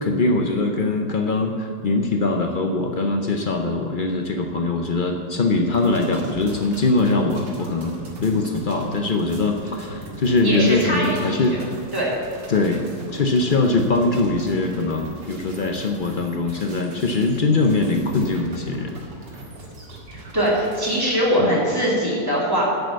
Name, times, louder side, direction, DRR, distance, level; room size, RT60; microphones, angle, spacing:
voice 1, 0.0-7.9 8.2-11.5 12.5-19.0 21.4-21.6, left 3 dB, 85° left, 3 dB, 0.4 m, -22 dB
sound 1, 5.7-21.0, right 1 dB, 75° right, 2.6 m, -40 dB
voice 2, 10.4-11.6 11.9-12.1 20.3-22.6, equal, 10° right, -6 dB, 3.0 m, -22 dB
11.0 x 6.9 x 8.0 m, 2.1 s
omnidirectional pair, 1.9 m